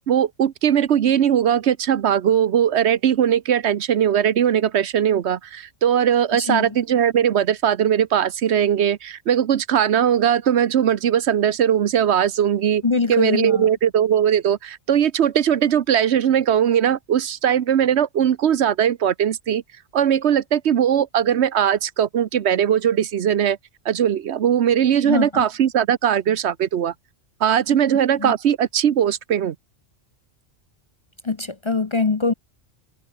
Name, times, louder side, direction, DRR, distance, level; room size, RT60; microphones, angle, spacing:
voice 1, 0.1-12.8 13.1-19.6 19.9-23.6 23.9-26.9 27.4-29.5, right 9 dB, 75° right, 1.1 m, -19 dB
voice 2, 6.3-6.8 12.8-13.7 25.0-25.5 28.2-28.3 31.2-32.3, left 4 dB, 30° left, 0.7 m, -23 dB
omnidirectional pair, 1.2 m